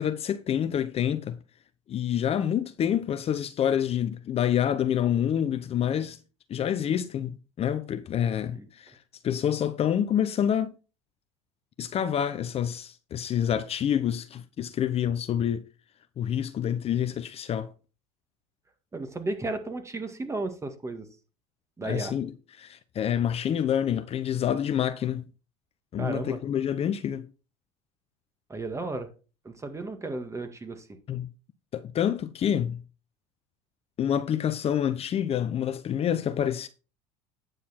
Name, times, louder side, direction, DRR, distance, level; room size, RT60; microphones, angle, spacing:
voice 1, 0.0-1.4 1.9-6.2 6.5-7.3 7.6-8.9 9.2-10.7 11.8-15.7 16.2-17.7 21.8-22.3 22.6-25.2 25.9-27.3 31.1-31.3 31.7-32.8 34.0-36.7, left 9 dB, 40° left, 0.8 m, -27 dB
voice 2, 18.9-21.1 21.8-22.1 26.0-26.4 28.5-29.1 29.4-30.8, right 2 dB, 20° right, 1.9 m, -34 dB
9.3 x 6.8 x 4.3 m
hypercardioid pair, 85°, 16 cm